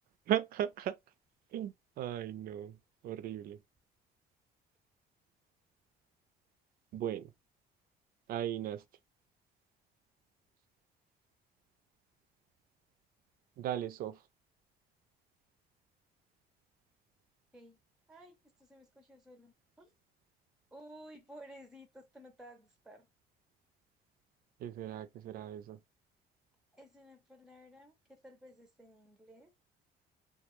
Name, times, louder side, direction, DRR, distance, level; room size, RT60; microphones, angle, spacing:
voice 1, 0.3-1.0 1.5-2.8 3.0-3.6 6.9-7.3 8.3-8.8 13.6-14.2 24.6-25.8, right 11 dB, 60° right, 0.4 m, -36 dB
voice 2, 18.1-19.9 20.7-23.1 26.7-29.5, equal, 5° right, 0.5 m, -55 dB
2.2 x 2.2 x 3.0 m
cardioid pair, 110°, 17 cm